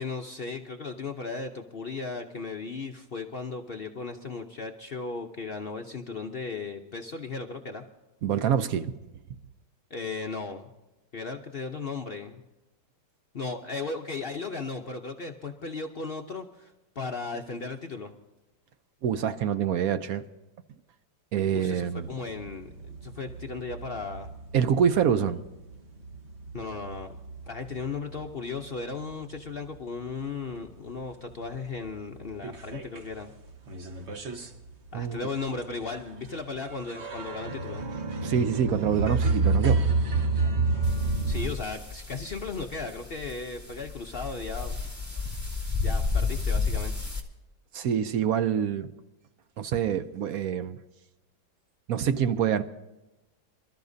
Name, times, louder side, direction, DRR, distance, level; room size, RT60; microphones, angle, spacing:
voice 1, 0.0-7.8 9.9-10.7 11.1-12.4 13.3-18.1 21.5-24.3 26.5-27.2 27.5-33.3 34.9-37.9 41.3-44.8 45.8-46.9, left 4 dB, 60° left, 0.6 m, -36 dB
voice 2, 8.2-8.9 19.0-20.2 21.3-22.1 24.5-25.4 34.9-35.3 38.2-39.8 40.4-40.5 47.7-48.9 49.6-50.8 51.9-52.6, right 8 dB, 65° right, 0.9 m, -26 dB
sound 1, 22.0-28.7 29.0-30.1 30.5-30.6 31.0-31.1 31.3-33.1 33.5-41.5, right 3 dB, 40° right, 1.3 m, -30 dB
sound 2, 40.8-47.2, left 4 dB, 10° right, 1.7 m, -32 dB
26.0 x 13.0 x 2.7 m
omnidirectional pair, 2.1 m